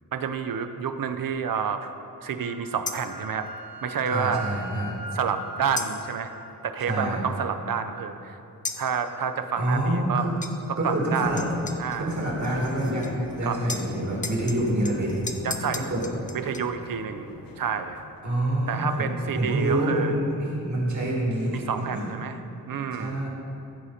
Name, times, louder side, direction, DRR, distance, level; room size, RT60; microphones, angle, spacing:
voice 1, 0.1-1.9 2.2-3.5 3.8-4.6 5.1-6.3 6.6-8.4 8.8-10.3 10.7-11.3 11.8-12.2 13.4-13.6 15.4-15.9 16.3-17.3 17.6-18.0 18.7-20.1 21.5-22.4 22.7-23.2, right 7 dB, 75° right, 9 dB, 0.6 m, -29 dB
Wind instrument woodwind instrument, 2.4-6.5, right 1 dB, 25° right, 1.1 m, -41 dB
sound 1, 2.9-3.2 5.8-6.2 8.6-8.9 10.4-10.6 11.4-13.4 13.7-16.6, left 3 dB, 25° left, 0.5 m, -36 dB
voice 2, 4.1-4.9 6.8-7.2 9.6-10.3 10.8-11.4 12.0-13.1 13.4-15.2 15.9-16.0 18.2-19.0 19.3-22.1 22.9-23.3, right 1 dB, 55° right, -4 dB, 2.3 m, -26 dB
sound 2, 11.2-18.2, left 6 dB, 80° left, 0.6 m, -43 dB
14.5 x 5.0 x 4.3 m, 2.7 s
wide cardioid pair, 120°, 34 cm